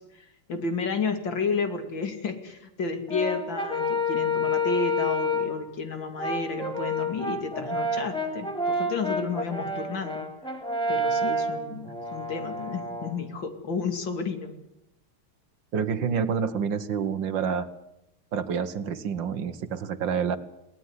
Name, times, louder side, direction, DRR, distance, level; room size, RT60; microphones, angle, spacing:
voice 1, 0.0-10.2 10.9-14.5, left 4 dB, 65° left, 8 dB, 3.2 m, -31 dB
Brass instrument, 3.1-5.6 6.2-13.1, left 1 dB, ahead, 3.9 m, -29 dB
voice 2, 15.7-17.7 18.3-20.4, right 6 dB, 65° right, 12 dB, 1.9 m, -28 dB
23.0 x 17.5 x 9.7 m, 0.89 s
omnidirectional pair, 2.3 m